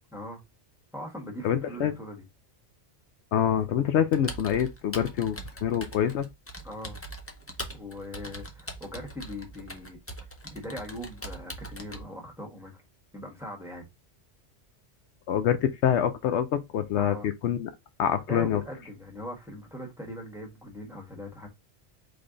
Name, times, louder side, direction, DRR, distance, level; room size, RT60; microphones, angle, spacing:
voice 1, 0.9-2.2 6.6-7.0 7.7-10.0 10.4-12.8 13.1-13.9 17.0-17.3 18.3-21.5, left 1 dB, ahead, 1.4 m, -40 dB
voice 2, 1.4-1.9 3.3-6.3 15.3-17.7 18.0-18.6, left 9 dB, 75° left, 0.9 m, -26 dB
Computer keyboard, 4.1-12.0, right 1 dB, 15° left, 0.6 m, -41 dB
3.9 x 3.3 x 3.8 m
omnidirectional pair, 1.2 m